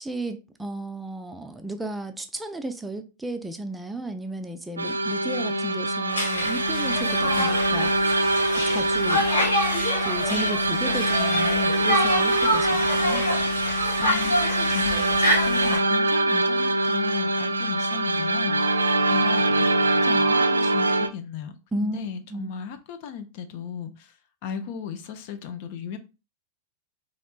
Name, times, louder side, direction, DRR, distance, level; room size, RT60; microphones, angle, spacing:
voice 1, 0.0-8.0 8.6-9.3 10.0-13.2 21.7-22.5, right 2 dB, 5° right, 0.4 m, -34 dB
sound 1, 4.8-21.1, right 2 dB, 75° right, 0.3 m, -23 dB
Conversation, 6.1-15.8, equal, 75° left, 1.5 m, -27 dB
voice 2, 14.0-21.5 21.8-24.2 24.4-26.0, left 8 dB, 50° left, 0.5 m, -36 dB
4.2 x 2.9 x 2.4 m
figure-of-eight pair, 90°, 0 cm